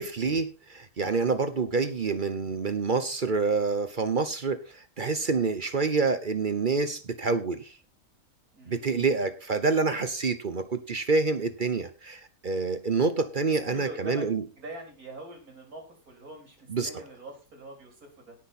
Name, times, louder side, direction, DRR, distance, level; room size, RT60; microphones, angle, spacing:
voice 1, 0.0-7.7 8.7-14.4 16.7-16.9, right 4 dB, 40° right, 11 dB, 0.9 m, -27 dB
voice 2, 8.5-9.1 13.7-14.3 14.6-16.6 16.8-18.4, right 2 dB, 80° right, 2 dB, 4.4 m, -43 dB
18.0 x 6.1 x 4.2 m, 0.32 s
omnidirectional pair, 1.5 m